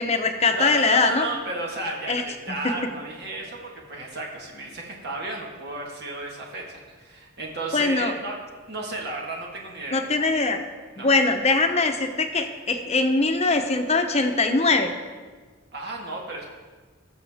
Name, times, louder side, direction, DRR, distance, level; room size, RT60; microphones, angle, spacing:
voice 1, 0.0-1.3 2.1-2.7 7.7-8.1 9.9-10.6 11.0-14.9, left 3 dB, 35° left, 6 dB, 0.9 m, -22 dB
voice 2, 0.5-8.4 8.7-10.0 11.0-11.1 15.7-16.5, right 2 dB, 55° right, -1 dB, 1.7 m, -33 dB
20.0 x 6.8 x 3.6 m, 1.4 s
head